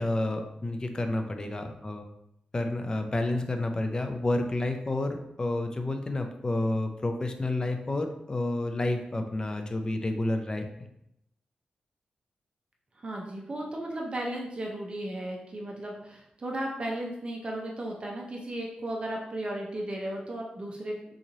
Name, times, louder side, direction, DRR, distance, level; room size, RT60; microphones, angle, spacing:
voice 1, 0.0-2.1 2.5-10.9, left 2 dB, 30° left, 6 dB, 0.4 m, -30 dB
voice 2, 13.0-21.0, right 1 dB, 40° right, -1 dB, 0.6 m, -35 dB
3.8 x 3.0 x 2.7 m, 0.80 s
cardioid pair, 90°, 3 cm